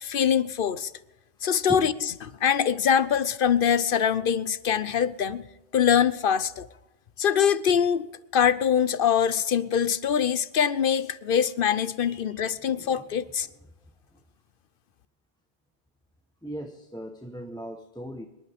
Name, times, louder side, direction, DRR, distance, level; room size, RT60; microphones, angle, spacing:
voice 1, 0.0-0.9 1.4-1.9 2.4-5.4 5.7-6.7 7.2-8.1 8.3-13.5, left 8 dB, 60° left, 0.8 m, -23 dB
voice 2, 12.0-13.1 14.1-14.2 16.4-18.3, equal, 5° left, 0.9 m, -38 dB
25.0 x 11.5 x 3.5 m
omnidirectional pair, 1.1 m